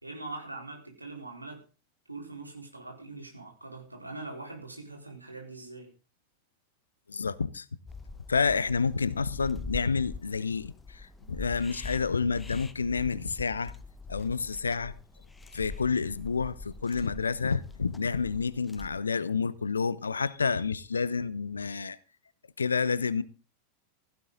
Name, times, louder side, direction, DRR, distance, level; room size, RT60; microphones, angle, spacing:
voice 1, 0.0-1.6 2.1-5.9, right 2 dB, 85° right, 4.4 m, -42 dB
voice 2, 7.1-7.6 8.3-13.7 14.1-14.9 15.5-22.0 22.6-23.2, left 5 dB, 75° left, 0.9 m, -29 dB
sound 1, 7.9-19.0, left 3 dB, 10° left, 1.1 m, -44 dB
16.0 x 15.0 x 3.9 m
figure-of-eight pair, 90°, 0 cm